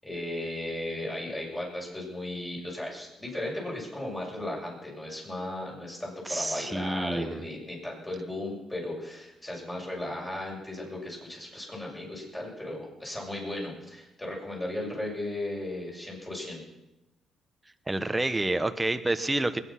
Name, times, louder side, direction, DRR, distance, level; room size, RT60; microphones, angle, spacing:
voice 1, 0.0-16.6, left 1 dB, 15° left, -3 dB, 6.9 m, -36 dB
voice 2, 6.3-7.4 17.9-19.6, right 2 dB, 15° right, 10 dB, 0.9 m, -28 dB
21.0 x 9.7 x 5.9 m, 0.95 s
cardioid pair, 90°, 0 cm